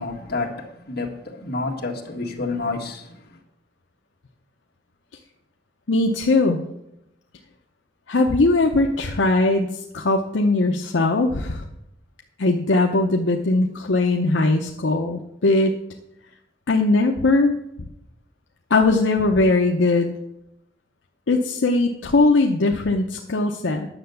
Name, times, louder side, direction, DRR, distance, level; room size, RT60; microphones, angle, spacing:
voice 1, 0.0-3.2, left 3 dB, 60° left, 1.8 m, -29 dB
voice 2, 5.9-6.6 8.1-11.7 12.4-15.7 16.7-17.5 18.7-20.1 21.3-23.9, left 2 dB, 80° left, 0.8 m, -20 dB
10.0 x 6.7 x 6.9 m
head